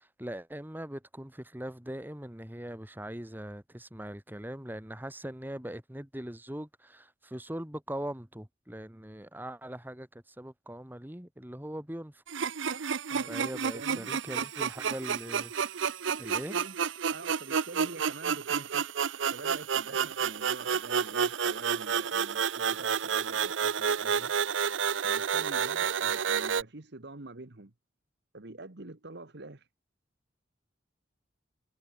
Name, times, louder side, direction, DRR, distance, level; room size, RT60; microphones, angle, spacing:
voice 1, 0.0-12.2 13.3-15.5 16.2-16.6, right 1 dB, 10° right, 1.9 m, -41 dB
sound 1, 12.3-26.6, right 7 dB, 80° right, 0.7 m, -30 dB
voice 2, 12.7-14.1 16.0-16.7 17.1-18.9 19.3-24.3 25.0-27.7 28.3-29.7, right 2 dB, 60° right, 1.5 m, -46 dB
head